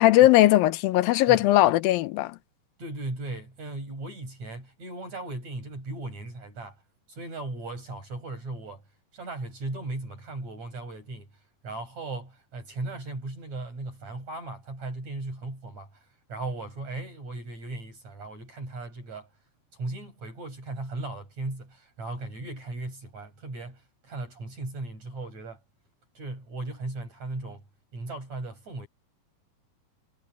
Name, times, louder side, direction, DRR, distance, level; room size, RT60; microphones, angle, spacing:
voice 1, 0.0-2.4, left 15 dB, 90° left, 2.6 m, -19 dB
voice 2, 2.8-6.8 7.1-8.8 9.1-11.3 11.6-19.3 19.7-25.6 26.2-27.6 27.9-28.9, right 2 dB, 50° right, 8.7 m, -37 dB
omnidirectional pair, 4.0 m